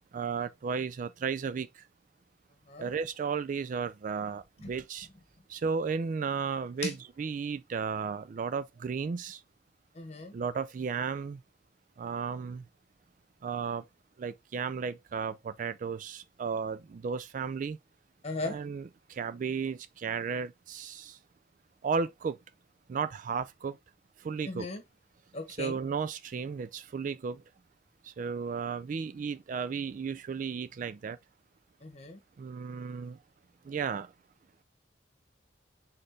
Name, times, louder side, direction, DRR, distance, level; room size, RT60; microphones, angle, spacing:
voice 1, 0.1-1.8 2.8-5.1 5.5-9.4 10.3-11.4 12.0-12.7 13.4-13.8 14.2-17.8 18.4-21.2 21.8-22.4 22.9-23.8 24.2-24.7 25.5-27.4 28.0-31.2 32.4-33.2 33.6-34.1, right 5 dB, 45° right, 0.3 m, -34 dB
voice 2, 9.9-10.3 18.2-18.6 24.4-24.8 25.3-25.8 31.8-32.2, left 2 dB, 40° left, 1.3 m, -37 dB
4.3 x 3.9 x 3.2 m
head